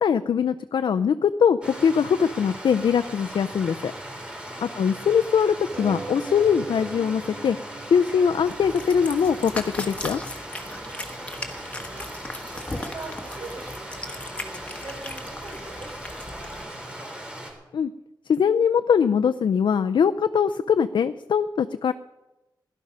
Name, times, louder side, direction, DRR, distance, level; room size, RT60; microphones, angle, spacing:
voice 1, 0.0-3.9 4.6-7.6 7.9-10.2 17.7-17.9 18.3-21.9, left 7 dB, 75° left, 9 dB, 0.5 m, -22 dB
Stream, 1.6-17.5, right 1 dB, 10° right, 3.8 m, -38 dB
voice 2, 4.1-4.9 10.5-17.1, right 3 dB, 65° right, -1 dB, 5.6 m, -44 dB
sound 1, 5.7-10.7 11.5-11.6 11.9-12.0, right 3 dB, 30° right, 0.7 m, -41 dB
Cat, 8.4-16.6, left 2 dB, 15° left, 1.4 m, -38 dB
17.0 x 11.5 x 5.5 m, 1.0 s
wide cardioid pair, 150°, 8 cm